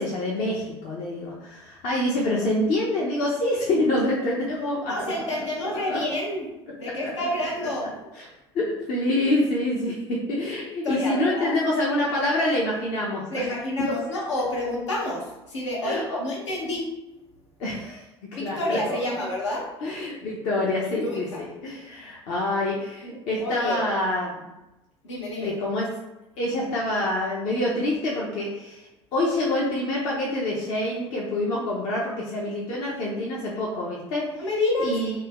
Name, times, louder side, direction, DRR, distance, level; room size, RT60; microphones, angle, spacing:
voice 1, 0.0-4.9 5.9-6.0 6.8-7.1 8.2-8.3 8.5-13.5 15.8-16.2 17.6-18.0 18.4-19.0 19.8-24.4 25.4-25.9 26.4-34.3 34.8-35.1, left 1 dB, 55° left, -4 dB, 0.6 m, -26 dB
voice 2, 4.9-6.5 6.8-7.9 10.8-11.5 13.3-16.9 18.3-19.7 21.0-21.4 23.4-23.9 25.0-25.5 34.4-35.0, left 1 dB, 85° left, -3 dB, 0.8 m, -29 dB
2.6 x 2.2 x 3.6 m, 0.98 s
hypercardioid pair, 70°, 15 cm